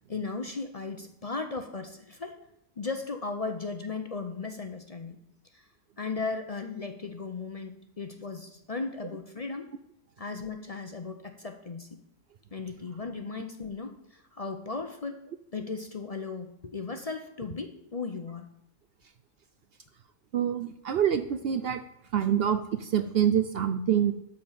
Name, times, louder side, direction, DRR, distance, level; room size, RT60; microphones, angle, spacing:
voice 1, 0.1-2.4 2.8-5.2 5.5-5.7 6.0-9.7 10.2-11.9 12.5-15.2 15.5-18.5, left 4 dB, 35° left, 6 dB, 0.7 m, -36 dB
voice 2, 20.3-21.8 22.1-24.1, right 9 dB, 60° right, 10 dB, 0.7 m, -26 dB
12.5 x 4.4 x 7.3 m, 0.77 s
omnidirectional pair, 1.3 m